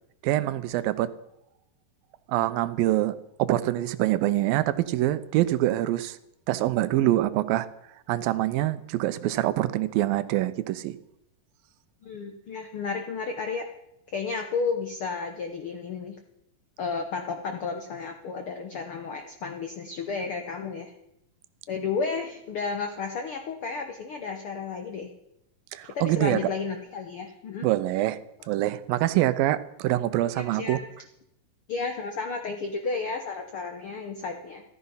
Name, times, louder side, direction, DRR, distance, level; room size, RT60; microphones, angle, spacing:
voice 1, 0.2-1.1 2.3-3.1 3.4-6.2 6.5-7.7 8.1-11.0 25.7-26.4 27.6-28.2 28.5-30.8, right 15 dB, 90° right, 14 dB, 2.5 m, -25 dB
voice 2, 12.0-13.7 14.1-16.2 16.8-20.9 21.7-25.1 25.9-27.7 30.3-30.8 31.7-34.6, left 4 dB, 75° left, 5 dB, 1.2 m, -32 dB
14.0 x 13.5 x 5.6 m, 0.79 s
omnidirectional pair, 4.0 m